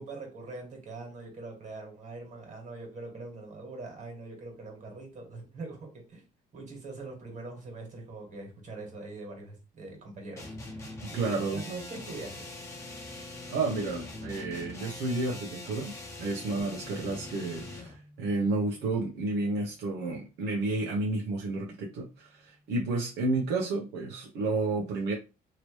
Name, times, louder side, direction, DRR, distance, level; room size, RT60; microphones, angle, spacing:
voice 1, 0.0-6.2 6.5-12.6, right 3 dB, 45° right, 1.8 m, -43 dB
sound 1, 10.4-18.0, left 2 dB, 15° left, 1.0 m, -43 dB
voice 2, 11.0-11.6 13.5-25.1, right 3 dB, 85° right, 0.8 m, -31 dB
Bass guitar, 16.6-22.8, left 1 dB, 35° left, 1.5 m, -56 dB
3.0 x 2.9 x 3.0 m
cardioid pair, 110°, 17 cm